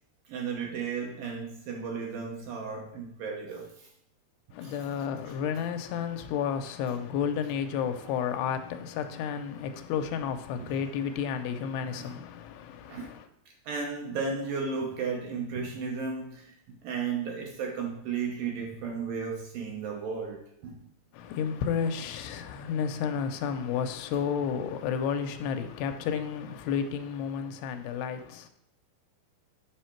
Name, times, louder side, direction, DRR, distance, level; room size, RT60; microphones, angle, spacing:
voice 1, 0.3-3.9 4.6-4.8 10.6-10.8 11.9-12.1 12.9-13.2 13.7-16.5 16.8-20.9, right 5 dB, 70° right, 2.2 m, -34 dB
voice 2, 4.5-13.3 21.1-28.5, left 7 dB, 85° left, 2.7 m, -31 dB
9.0 x 5.6 x 4.5 m
omnidirectional pair, 4.7 m